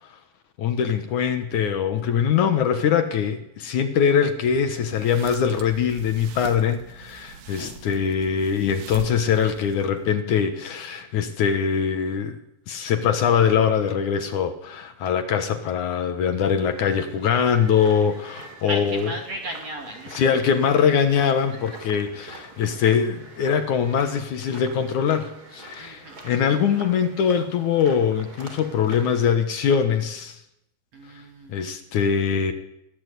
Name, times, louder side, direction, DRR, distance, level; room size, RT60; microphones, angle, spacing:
voice 1, 0.6-12.4 12.7-19.1 20.1-30.4 31.5-32.5, left 7 dB, 65° left, 9 dB, 2.1 m, -22 dB
sound 1, 4.8-10.0, right 8 dB, 80° right, 3.9 m, -42 dB
sound 2, 16.5-29.2, right 2 dB, 20° right, 3.8 m, -45 dB
voice 2, 18.7-20.1 25.8-26.2 30.9-31.6, right 1 dB, 45° right, 3 dB, 2.8 m, -35 dB
21.0 x 16.0 x 8.3 m, 0.82 s
omnidirectional pair, 5.0 m